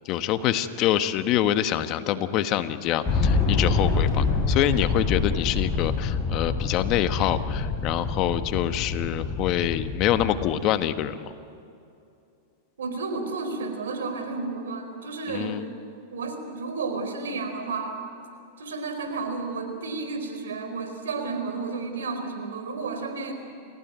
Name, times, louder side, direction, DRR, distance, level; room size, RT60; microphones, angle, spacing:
voice 1, 0.1-11.3 15.3-15.7, left 11 dB, 45° left, 10 dB, 1.2 m, -26 dB
sound 1, 3.0-10.4, left 4 dB, 30° left, 7.6 m, -26 dB
voice 2, 12.8-15.6 16.1-18.0 18.6-23.3, right 4 dB, 90° right, 6 dB, 4.4 m, -32 dB
29.5 x 15.5 x 9.3 m, 2.6 s
hypercardioid pair, 125°, 0 cm